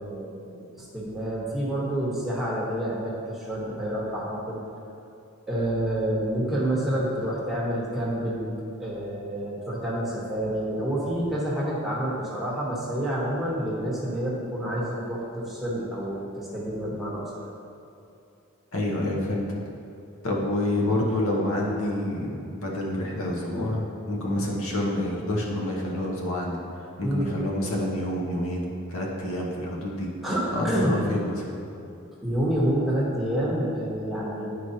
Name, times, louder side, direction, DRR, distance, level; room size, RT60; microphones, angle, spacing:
voice 1, 0.0-4.6 5.5-8.5 8.8-17.4 27.0-27.3 30.2-31.0 32.2-34.5, right 1 dB, ahead, -7 dB, 1.1 m, -28 dB
voice 2, 18.7-19.6 20.2-26.6 27.0-30.1 30.5-31.5, left 1 dB, 70° left, -2 dB, 1.0 m, -28 dB
9.9 x 4.7 x 2.8 m, 2.7 s
head